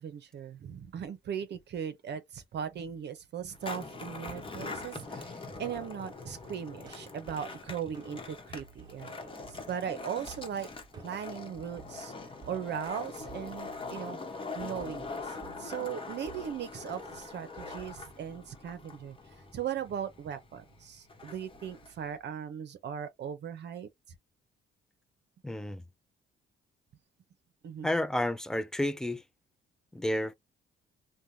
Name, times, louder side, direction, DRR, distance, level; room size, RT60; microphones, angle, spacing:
voice 1, 0.0-10.7 11.0-12.1 12.5-14.2 14.5-19.2 19.5-23.9 27.6-27.9, right 8 dB, 60° right, 0.7 m, -38 dB
Skateboard, 3.5-22.1, left 3 dB, 25° left, 1.0 m, -43 dB
sound 1, 4.0-18.1, right 4 dB, 20° right, 1.3 m, -55 dB
voice 2, 25.4-25.8 27.8-29.2 29.9-30.3, left 1 dB, 5° left, 0.4 m, -30 dB
3.3 x 2.2 x 2.7 m
cardioid pair, 90°, 20 cm